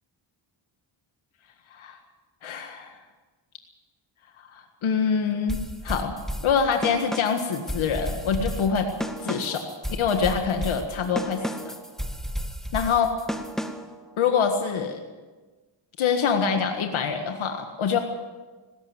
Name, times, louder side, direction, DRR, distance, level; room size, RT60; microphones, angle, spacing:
voice 1, 2.4-2.9 4.5-6.1 6.4-8.9 9.2-9.6 10.0-11.4 12.7-13.1 14.2-15.0 16.0-18.0, left 6 dB, 85° left, 5 dB, 1.8 m, -25 dB
sound 1, 5.5-14.0, equal, ahead, 1.8 m, -33 dB
19.0 x 17.5 x 8.0 m, 1.3 s
cardioid pair, 85°, 47 cm